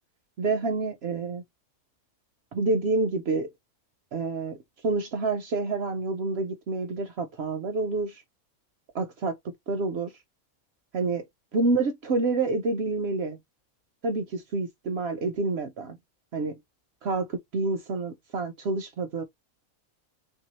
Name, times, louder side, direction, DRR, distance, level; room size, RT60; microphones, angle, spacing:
voice 1, 0.4-1.4 2.5-3.5 4.1-4.6 4.8-8.2 8.9-9.3 9.7-10.1 10.9-11.2 11.5-13.4 14.0-16.0 16.3-16.6 17.0-19.2, right 3 dB, 65° right, 0.7 m, -28 dB
3.2 x 2.7 x 2.9 m
omnidirectional pair, 1.5 m